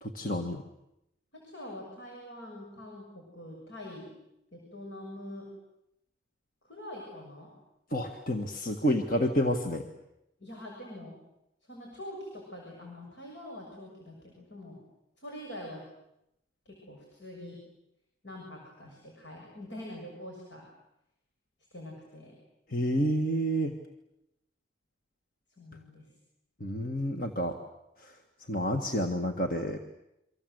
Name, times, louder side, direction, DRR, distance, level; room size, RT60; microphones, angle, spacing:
voice 1, 0.0-0.6 7.9-9.8 22.7-23.7 26.6-27.6 28.0-28.1 28.5-29.8, equal, 50° left, 4 dB, 1.7 m, -29 dB
voice 2, 1.3-4.1 4.5-5.5 6.6-7.5 10.4-11.2 11.7-14.8 15.2-15.9 16.7-17.6 18.2-20.7 21.7-22.4 25.6-26.1, left 1 dB, 80° left, -1 dB, 7.0 m, -44 dB
28.5 x 25.0 x 8.1 m, 0.85 s
head